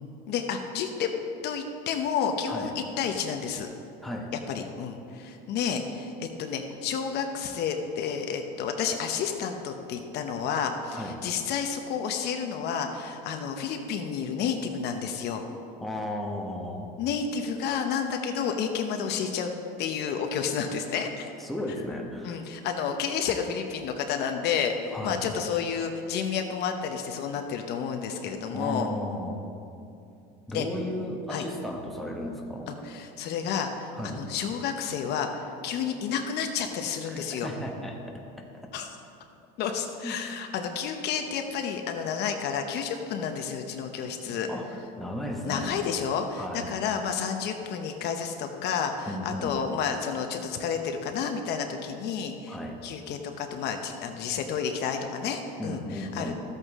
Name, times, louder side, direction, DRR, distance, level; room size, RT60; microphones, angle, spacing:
voice 1, 0.3-1.1 1.4-3.7 4.5-15.4 17.0-19.5 19.8-21.3 22.2-28.9 30.5-30.7 31.3-31.4 32.7-37.5 38.7-39.0 39.6-44.5 45.4-52.6 52.8-56.3, left 7 dB, 55° left, 5 dB, 0.9 m, -30 dB
voice 2, 4.0-4.3 10.9-11.2 15.8-16.9 21.4-22.4 24.9-25.2 28.5-29.4 30.5-32.7 33.9-34.2 37.1-38.2 40.0-40.2 44.5-44.7 45.0-45.7 46.4-46.7 49.1-49.5 52.5-52.8 55.6-56.3, left 1 dB, ahead, 0 dB, 1.2 m, -34 dB
13.5 x 8.2 x 3.6 m, 2.6 s
supercardioid pair, 120°, 21 cm